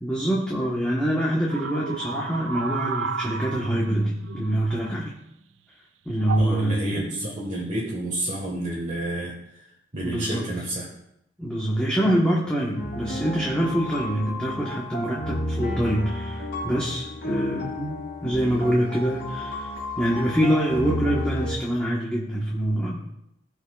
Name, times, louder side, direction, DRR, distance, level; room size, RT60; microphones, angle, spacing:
voice 1, 0.0-5.1 6.1-7.1 10.0-10.5 11.4-23.0, right 1 dB, 5° left, -5 dB, 1.1 m, -25 dB
sound 1, 1.5-5.3 6.2-6.6 7.5-7.8, right 5 dB, 85° right, 0.4 m, -33 dB
voice 2, 6.4-10.9, right 1 dB, 40° right, -4 dB, 1.4 m, -30 dB
sound 2, 12.7-21.6, left 1 dB, 65° left, 3.2 m, -32 dB
17.0 x 5.6 x 2.3 m, 0.81 s
head